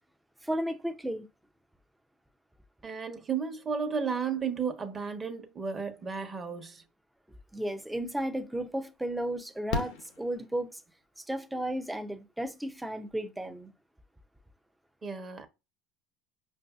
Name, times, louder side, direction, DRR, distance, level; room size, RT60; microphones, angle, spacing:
voice 1, 0.4-1.3 7.5-10.8 11.2-13.7, right 1 dB, 5° right, 0.6 m, -34 dB
voice 2, 2.8-6.8 15.0-15.5, right 6 dB, 30° right, 1.0 m, -33 dB
Fireworks, 8.0-8.1 9.7-11.0 12.8-12.9 13.1-13.2, left 5 dB, 70° left, 0.7 m, -36 dB
5.2 x 2.6 x 2.4 m
supercardioid pair, 100°, 0 cm